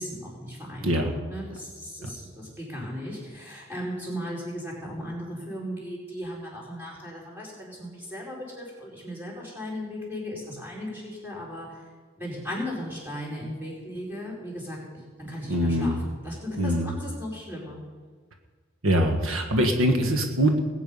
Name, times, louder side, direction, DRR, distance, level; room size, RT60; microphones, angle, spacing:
voice 1, 0.0-11.9 12.2-17.8, equal, 10° right, -5 dB, 4.6 m, -36 dB
voice 2, 15.5-16.0 16.6-16.9 18.8-20.6, equal, 75° right, 4 dB, 1.5 m, -23 dB
20.0 x 8.7 x 5.6 m, 1.5 s
head